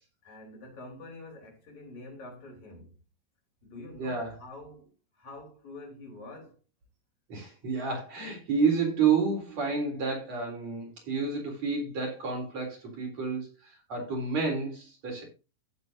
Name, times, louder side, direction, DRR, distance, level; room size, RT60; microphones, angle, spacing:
voice 1, 0.2-3.0 3.6-4.9 5.2-6.6, left 2 dB, 55° left, 5.0 m, -46 dB
voice 2, 4.0-4.4 7.3-15.2, right 5 dB, 50° right, 4.6 m, -30 dB
15.5 x 7.4 x 2.7 m
omnidirectional pair, 3.9 m